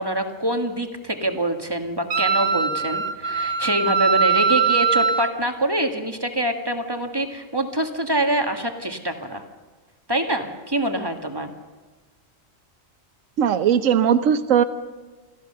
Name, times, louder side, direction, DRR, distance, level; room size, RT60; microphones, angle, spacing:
voice 1, 0.0-9.4 10.1-11.5, right 1 dB, 20° right, 6 dB, 1.5 m, -25 dB
Wind instrument woodwind instrument, 2.1-5.3, right 6 dB, 50° right, 1.2 m, -21 dB
voice 2, 13.4-14.6, right 8 dB, 85° right, 13 dB, 1.2 m, -18 dB
28.5 x 14.0 x 6.7 m, 1.3 s
omnidirectional pair, 1.3 m